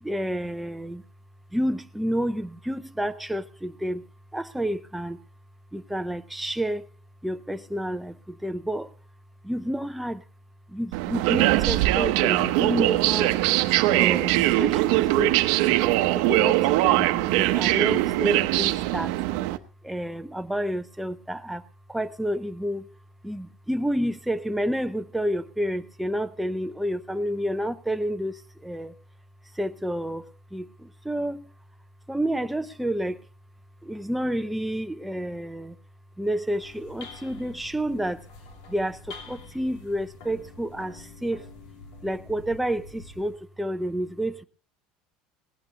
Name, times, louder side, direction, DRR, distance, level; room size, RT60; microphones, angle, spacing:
voice 1, 0.0-1.0 1.5-4.0 4.3-5.2 5.7-6.9 7.2-8.9 9.4-10.2 10.7-13.3 13.9-15.8 16.1-19.1 19.8-21.6 21.9-22.9 23.2-28.9 29.5-31.5 32.1-33.2 33.8-35.8 36.2-38.2 38.7-41.5 42.0-44.4, equal, ahead, 0.5 m, -30 dB
sound 1, 10.9-19.6, right 17 dB, 75° right, 0.8 m, -22 dB
sound 2, 36.4-43.4, left 3 dB, 85° left, 2.9 m, -46 dB
18.5 x 15.5 x 2.9 m
cardioid pair, 160°, 3 cm